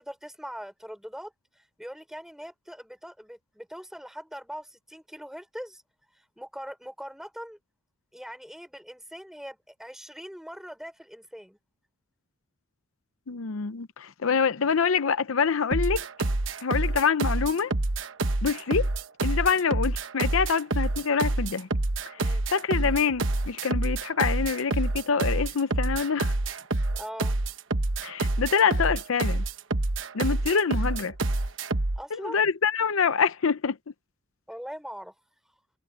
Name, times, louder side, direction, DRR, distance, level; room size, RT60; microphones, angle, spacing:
voice 1, 0.0-5.8 6.4-7.6 8.1-11.6 19.5-19.6 22.2-22.5 26.9-27.3 32.0-32.4 34.5-35.1, equal, ahead, 5.4 m, -41 dB
voice 2, 13.3-16.0 16.6-17.7 18.4-18.9 19.2-21.7 22.1-26.3 28.0-29.4 30.1-31.1 32.2-33.8, left 6 dB, 80° left, 0.6 m, -26 dB
sound 1, 15.7-32.0, right 2 dB, 65° right, 1.1 m, -27 dB
head